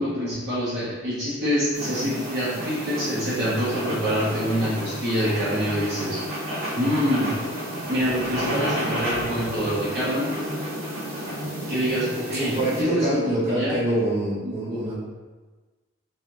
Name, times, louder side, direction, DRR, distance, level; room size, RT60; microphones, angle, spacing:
voice 1, 0.0-6.2 6.7-7.4 7.9-10.3 11.7-12.5 12.8-13.2 13.5-13.8 14.4-14.9, equal, 50° right, -10 dB, 1.0 m, -26 dB
sound 1, 1.7-12.8, equal, 70° right, 1.4 m, -31 dB
voice 2, 12.3-14.9, right 1 dB, 30° right, -9 dB, 1.2 m, -25 dB
3.5 x 3.3 x 3.0 m, 1.3 s
head